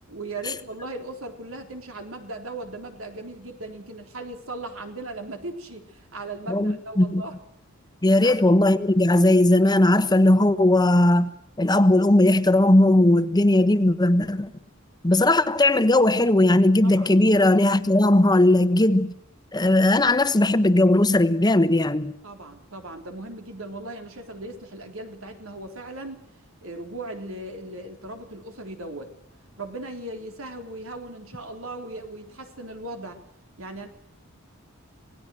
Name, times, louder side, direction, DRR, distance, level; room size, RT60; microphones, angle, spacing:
voice 1, 0.1-7.3 8.1-8.4 16.8-17.1 22.2-26.2 26.6-29.1 29.6-33.2 33.6-33.9, right 2 dB, 85° right, 3.8 m, -38 dB
voice 2, 6.5-7.2 8.0-11.3 11.6-14.5 15.0-19.1 19.5-22.1, left 1 dB, 20° left, 1.1 m, -18 dB
27.0 x 18.5 x 6.4 m
head